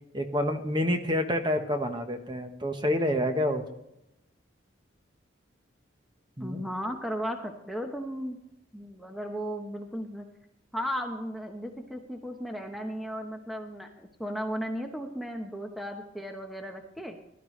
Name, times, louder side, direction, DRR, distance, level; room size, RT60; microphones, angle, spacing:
voice 1, 0.1-3.6 6.4-6.6, left 1 dB, 25° right, 5 dB, 1.1 m, -28 dB
voice 2, 6.4-8.4 8.7-10.3 10.7-17.2, equal, ahead, 3 dB, 0.9 m, -35 dB
17.0 x 12.0 x 3.2 m, 0.85 s
head